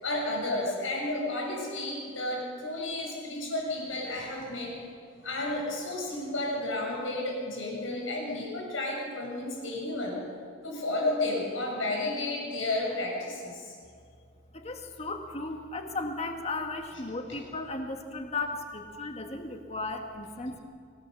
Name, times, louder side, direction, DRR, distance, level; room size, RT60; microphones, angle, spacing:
voice 1, 0.0-4.8 5.2-10.2 10.6-13.8 17.3-17.4, left 2 dB, 80° left, -2 dB, 7.0 m, -32 dB
voice 2, 14.5-20.6, left 2 dB, 35° left, 4 dB, 1.8 m, -35 dB
25.0 x 17.0 x 6.9 m, 2.2 s
head